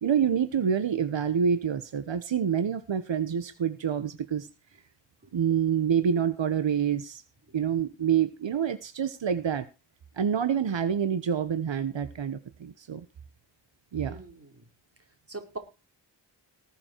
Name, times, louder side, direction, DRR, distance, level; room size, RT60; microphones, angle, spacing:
voice 1, 0.0-4.5 5.3-7.2 7.5-9.6 10.2-13.0 13.9-14.2, right 8 dB, 85° right, 11 dB, 1.3 m, -27 dB
voice 2, 14.0-14.6 15.3-15.6, right 3 dB, 30° right, 4 dB, 4.7 m, -41 dB
19.5 x 7.3 x 4.6 m, 0.30 s
wide cardioid pair, 90°, 44 cm